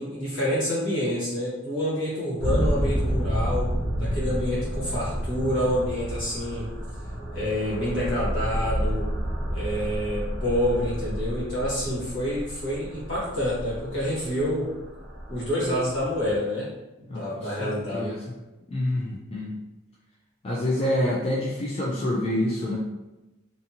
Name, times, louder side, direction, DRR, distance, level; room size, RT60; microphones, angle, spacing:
voice 1, 0.0-6.7 7.3-9.1 9.5-14.7 15.3-16.7 17.0-18.2, equal, 65° left, -8 dB, 1.4 m, -28 dB
sound 1, 2.4-16.4, equal, 10° right, 1.0 m, -30 dB
voice 2, 17.1-18.2 18.7-19.5 20.4-22.8, left 1 dB, 30° left, -5 dB, 0.4 m, -27 dB
2.6 x 2.5 x 2.8 m, 1.0 s
head